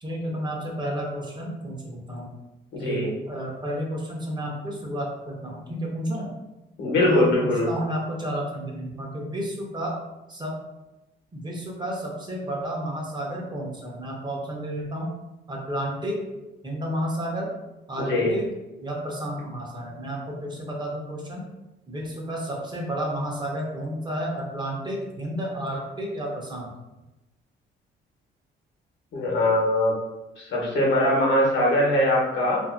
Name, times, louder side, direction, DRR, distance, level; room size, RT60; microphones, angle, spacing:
voice 1, 0.0-2.4 2.8-6.3 7.0-10.0 10.3-10.6 11.3-15.1 15.5-16.2 16.6-17.5 17.9-18.5 18.8-21.4 21.9-26.7, equal, 20° right, -1 dB, 0.8 m, -31 dB
voice 2, 2.7-3.1 6.8-7.7 18.0-18.3 29.1-29.9 30.4-32.6, left 1 dB, 65° left, -3 dB, 1.1 m, -22 dB
2.6 x 2.6 x 2.5 m, 1.0 s
cardioid pair, 90°, 20 cm